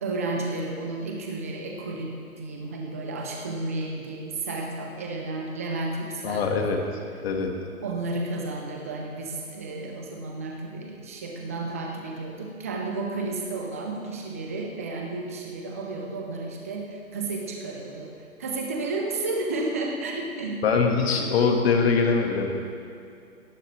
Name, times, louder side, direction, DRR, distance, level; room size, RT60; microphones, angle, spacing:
voice 1, 0.0-6.5 7.8-20.6, right 2 dB, 10° right, 1 dB, 0.5 m, -32 dB
voice 2, 6.2-6.8 7.2-7.5 20.6-22.5, left 5 dB, 45° left, 2 dB, 1.9 m, -22 dB
18.0 x 13.5 x 3.4 m, 2.4 s
figure-of-eight pair, 140°, 44 cm